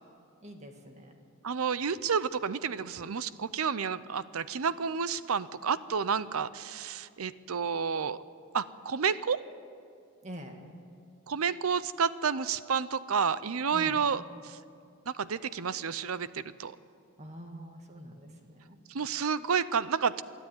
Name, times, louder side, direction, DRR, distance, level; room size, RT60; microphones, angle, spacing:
voice 1, 0.4-1.1 10.2-10.6 13.7-14.0 17.2-18.8, equal, 30° right, 3 dB, 2.0 m, -45 dB
voice 2, 1.4-8.2 8.5-9.4 11.3-14.6 15.1-16.7 18.9-20.2, right 6 dB, 80° right, 16 dB, 0.6 m, -30 dB
22.5 x 12.5 x 9.5 m, 2.3 s
head